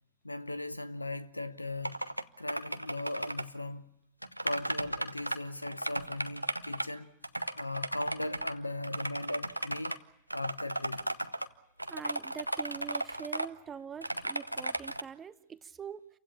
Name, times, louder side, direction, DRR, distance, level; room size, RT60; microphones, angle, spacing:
voice 1, 0.2-2.1 2.4-3.8 4.4-7.1 7.5-10.0 10.3-11.1, left 2 dB, 85° left, 0.8 m, -38 dB
sound 1, 1.8-2.2 2.5-3.4 4.2-5.4 5.6-6.9 7.2-8.5 8.8-10.0 10.3-11.5 11.8-13.5 14.0-15.0, right 1 dB, 90° right, 0.8 m, -35 dB
voice 2, 11.9-16.1, right 7 dB, 20° right, 0.9 m, -44 dB
29.0 x 16.0 x 8.8 m
figure-of-eight pair, 90°, 0 cm